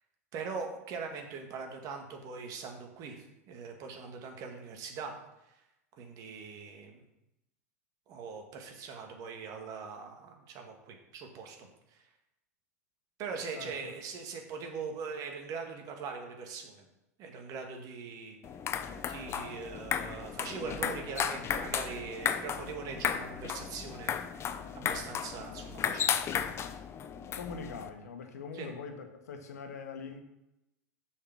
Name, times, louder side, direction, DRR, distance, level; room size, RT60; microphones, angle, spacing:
voice 1, 0.3-5.1 6.0-7.0 8.1-12.0 13.2-16.8 17.2-18.4 18.9-24.1 24.7-26.3 28.5-28.7, right 5 dB, 45° right, 3 dB, 1.9 m, -41 dB
voice 2, 13.5-13.9 27.3-30.2, left 5 dB, 75° left, 6 dB, 1.4 m, -43 dB
sound 1, 18.4-27.9, left 8 dB, 30° left, 0.7 m, -34 dB
7.1 x 5.0 x 6.1 m, 0.89 s
hypercardioid pair, 95°, 9 cm